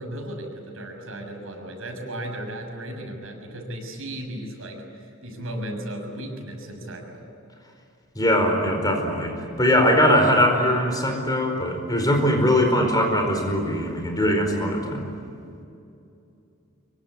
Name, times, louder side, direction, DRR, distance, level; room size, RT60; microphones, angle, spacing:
voice 1, 0.0-7.2 12.7-12.9, right 1 dB, 70° right, 3 dB, 6.5 m, -35 dB
voice 2, 8.1-15.1, equal, 20° left, 4 dB, 4.7 m, -21 dB
25.5 x 23.5 x 9.7 m, 2.6 s
head